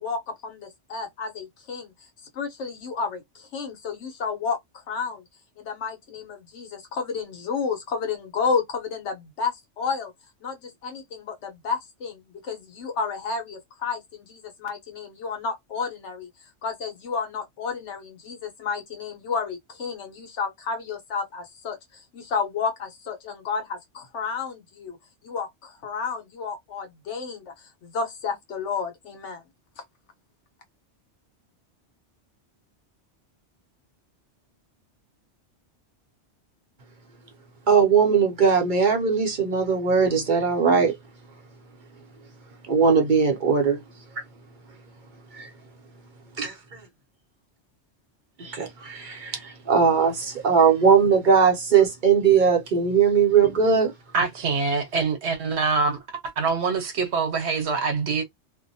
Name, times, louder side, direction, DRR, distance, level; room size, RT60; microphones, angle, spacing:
voice 1, 0.0-1.9 2.3-4.6 4.9-5.2 5.6-10.1 10.4-16.3 16.6-25.0 25.2-29.4 29.8-29.9, left 5 dB, 80° left, 1.1 m, -31 dB
voice 2, 37.7-40.9 42.7-43.8 45.3-45.5 46.4-46.5 48.4-53.9, right 6 dB, 50° right, 0.7 m, -19 dB
voice 3, 54.1-56.0 56.4-58.2, right 4 dB, 70° right, 1.1 m, -24 dB
2.6 x 2.1 x 2.6 m
omnidirectional pair, 1.2 m